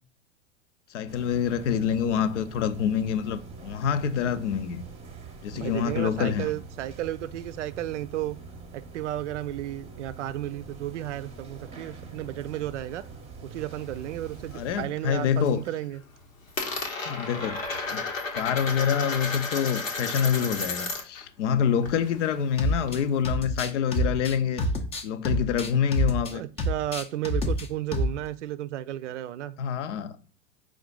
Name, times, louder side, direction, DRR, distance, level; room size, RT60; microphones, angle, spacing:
voice 1, 0.9-4.8 5.4-6.5 14.5-15.6 17.1-17.6 17.9-18.0 18.3-24.6 25.0-26.4 29.6-30.2, left 8 dB, 65° left, 0.6 m, -26 dB
sound 1, 1.1-14.9, right 4 dB, 15° right, 0.7 m, -44 dB
voice 2, 5.5-8.4 8.7-13.0 13.4-16.0 26.3-29.5, right 13 dB, 65° right, 0.5 m, -33 dB
Coin (dropping), 13.7-14.9 15.2-15.7 15.9-21.2 21.5-23.2, left 3 dB, 85° left, 1.0 m, -33 dB
sound 2, 22.6-23.0 23.3-26.3 26.6-27.7 27.9-28.2, equal, 15° left, 0.5 m, -28 dB
4.9 x 2.4 x 3.7 m
figure-of-eight pair, 85°, 39 cm